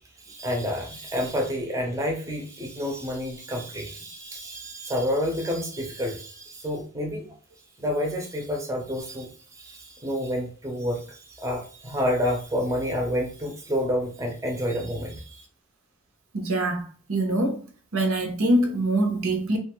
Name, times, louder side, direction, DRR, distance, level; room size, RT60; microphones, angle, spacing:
voice 1, 0.2-7.3 7.8-15.4, equal, 15° right, 0.5 m, -29 dB
voice 2, 16.3-17.6 17.9-19.6, right 1 dB, 85° right, 0.7 m, -24 dB
2.5 x 2.3 x 2.9 m
head